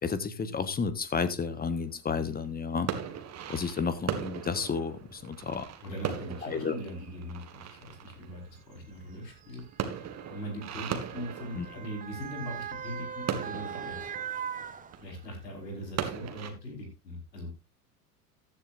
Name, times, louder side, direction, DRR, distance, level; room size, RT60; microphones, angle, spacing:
voice 1, 0.0-2.9 3.5-5.7 6.4-6.7 11.5-11.7, left 5 dB, 20° left, 12 dB, 1.4 m, -31 dB
sound 1, 1.4-16.5, right 8 dB, 35° right, 1.9 m, -39 dB
Motor vehicle (road) / Siren, 5.5-5.6 6.6-6.8 7.8-15.4 15.9-16.0, right 7 dB, 15° right, 1.0 m, -41 dB
voice 2, 5.8-9.6 10.3-14.1 15.0-17.5, equal, 80° left, 1 dB, 5.3 m, -40 dB
14.5 x 10.5 x 2.6 m, 0.25 s
figure-of-eight pair, 80°, 48 cm